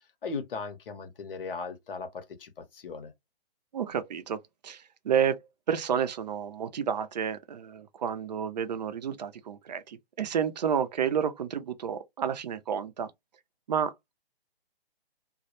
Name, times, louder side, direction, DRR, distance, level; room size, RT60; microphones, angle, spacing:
voice 1, 0.2-3.1, left 4 dB, 60° left, 0.8 m, -37 dB
voice 2, 3.7-5.4 5.7-13.1 13.7-14.1, right 8 dB, 45° right, 0.4 m, -30 dB
2.1 x 2.0 x 2.9 m
figure-of-eight pair, 140°, 31 cm